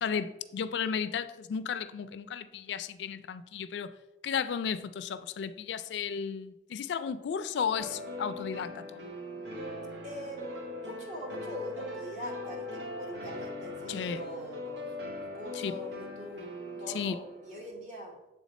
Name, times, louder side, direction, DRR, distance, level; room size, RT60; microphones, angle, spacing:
voice 1, 0.0-3.9 4.2-9.0 13.9-14.2 15.5-15.8 16.9-17.2, left 6 dB, 80° left, 0.3 m, -34 dB
sound 1, 7.8-17.7, left 1 dB, 80° right, 0.9 m, -40 dB
voice 2, 10.0-10.5 10.8-18.2, equal, 45° right, 1.2 m, -43 dB
7.3 x 3.5 x 4.1 m
head